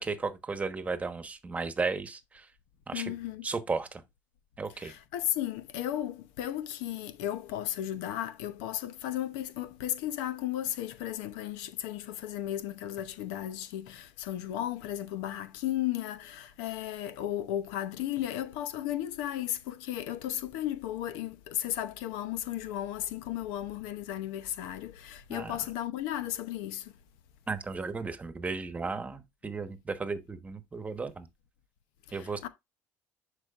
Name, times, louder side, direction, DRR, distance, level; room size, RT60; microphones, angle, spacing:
voice 1, 0.0-2.5 2.9-3.1 3.4-4.0 4.6-4.9 25.3-25.6 27.5-31.3 32.1-32.5, right 4 dB, 20° right, 1.2 m, -34 dB
voice 2, 2.9-3.5 4.8-26.9 32.1-32.5, left 12 dB, 90° left, 0.8 m, -35 dB
10.5 x 5.0 x 2.5 m
cardioid pair, 105°, 7 cm